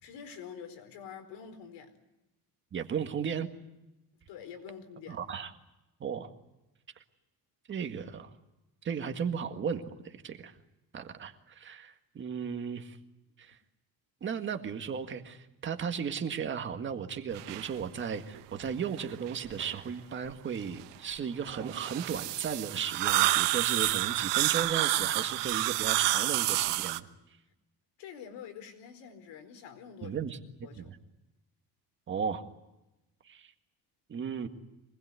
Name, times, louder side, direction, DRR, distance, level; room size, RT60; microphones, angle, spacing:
voice 1, 0.0-2.0 4.3-5.2 28.0-30.2 30.6-30.9, left 7 dB, 80° left, 4.6 m, -46 dB
voice 2, 2.7-3.5 5.1-5.5 6.0-6.3 7.7-8.3 8.8-10.6 10.9-13.0 13.4-13.6 14.2-27.1 30.0-31.0 32.1-32.4 33.2-33.5 34.1-34.5, right 7 dB, 30° right, 1.8 m, -35 dB
sound 1, 17.3-17.7 18.3-18.4 19.0-19.7 21.4-27.0, right 17 dB, 80° right, 1.2 m, -29 dB
25.5 x 20.5 x 9.6 m
cardioid pair, 180°, 41 cm